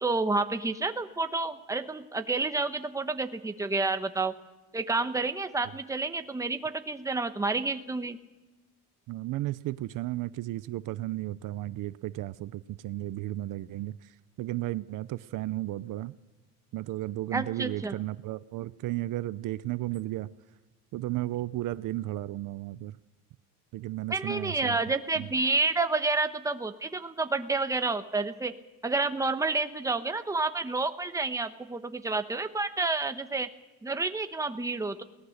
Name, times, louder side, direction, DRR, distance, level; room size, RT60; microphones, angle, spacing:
voice 1, 0.0-4.3 4.7-8.2 17.3-17.9 24.1-28.5 28.8-33.5 33.8-35.0, right 3 dB, 10° right, 8 dB, 1.1 m, -29 dB
voice 2, 9.1-16.1 16.7-20.3 20.9-23.0 23.7-24.8 25.1-25.3, right 16 dB, 70° right, 16 dB, 0.7 m, -34 dB
23.5 x 18.5 x 6.5 m, 1.1 s
cardioid pair, 145°, 34 cm